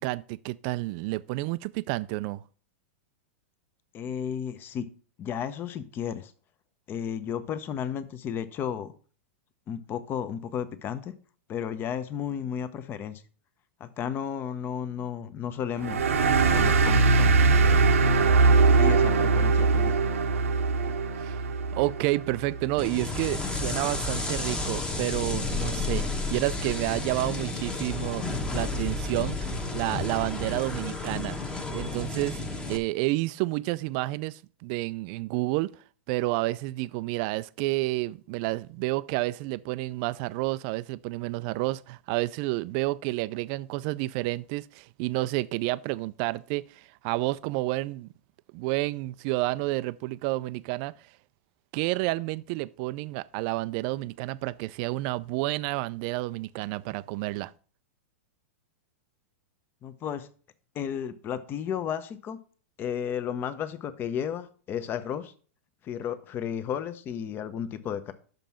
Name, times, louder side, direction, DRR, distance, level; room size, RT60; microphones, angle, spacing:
voice 1, 0.0-2.4 21.2-21.4 21.7-28.2 28.5-31.4 31.7-32.4 32.7-35.7 36.1-48.1 48.5-50.9 51.7-57.5, right 20 dB, 45° right, 0.3 m, -30 dB
voice 2, 3.9-4.9 5.2-6.3 6.9-8.9 9.7-11.1 11.5-13.2 13.8-16.0 16.5-17.8 18.7-19.9 59.8-60.3 60.7-62.4 62.8-65.3 65.8-68.1, left 8 dB, 30° left, 0.8 m, -33 dB
sound 1, 15.8-22.9, right 4 dB, 85° right, 0.9 m, -22 dB
sound 2, 22.8-32.8, left 3 dB, 10° left, 1.1 m, -31 dB
6.2 x 5.3 x 5.7 m
hypercardioid pair, 125°, 7 cm